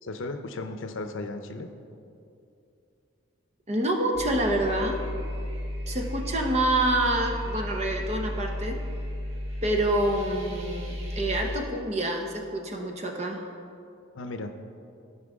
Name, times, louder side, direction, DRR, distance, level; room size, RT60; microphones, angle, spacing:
voice 1, 0.0-1.7 14.1-14.5, left 2 dB, 70° left, 7 dB, 0.6 m, -35 dB
voice 2, 3.7-5.0 5.9-8.8 9.6-13.4, right 1 dB, 30° right, 2 dB, 0.8 m, -27 dB
sound 1, 4.1-11.6, left 1 dB, 70° right, 1.6 m, -34 dB
15.0 x 5.6 x 3.6 m, 2.6 s
head